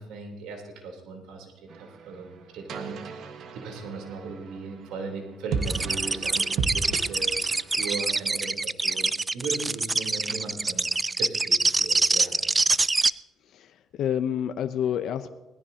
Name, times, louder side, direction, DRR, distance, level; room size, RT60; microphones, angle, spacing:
voice 1, 0.0-10.9 11.2-12.5, right 4 dB, 85° right, 1 dB, 3.4 m, -38 dB
sound 1, 1.7-8.2, right 5 dB, 65° right, 1.3 m, -35 dB
sound 2, 5.6-13.1, right 3 dB, 20° right, 0.3 m, -25 dB
voice 2, 13.5-15.3, left 9 dB, 65° left, 9 dB, 0.6 m, -29 dB
19.5 x 15.0 x 2.8 m, 1.1 s
cardioid pair, 105°, 0 cm